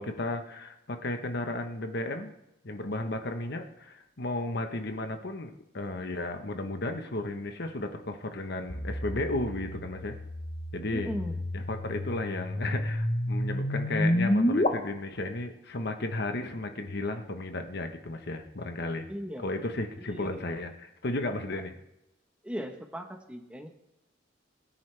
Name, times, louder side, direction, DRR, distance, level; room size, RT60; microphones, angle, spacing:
voice 1, 0.0-2.3 2.6-10.1 10.7-11.1 11.5-19.1 19.4-21.7, left 2 dB, 60° left, 6 dB, 1.1 m, -34 dB
sound 1, 8.7-14.7, left 1 dB, 35° left, 1.1 m, -30 dB
voice 2, 10.9-11.3 19.1-19.4 20.1-20.4 22.4-23.7, equal, 5° right, 4 dB, 1.1 m, -37 dB
22.0 x 9.9 x 3.4 m, 0.90 s
head